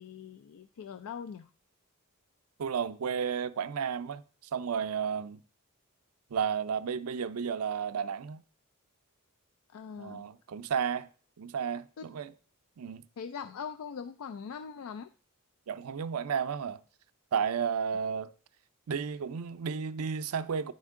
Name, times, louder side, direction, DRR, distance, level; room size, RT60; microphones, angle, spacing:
voice 1, 0.0-1.5 9.7-10.3 12.0-12.1 13.2-15.1, left 6 dB, 75° left, 0.4 m, -41 dB
voice 2, 2.6-4.2 4.5-5.4 6.3-8.4 10.0-11.1 11.4-12.3 12.8-13.0 15.7-16.8 17.3-18.3 18.9-20.7, right 7 dB, 90° right, 0.4 m, -32 dB
10.0 x 4.4 x 3.6 m
head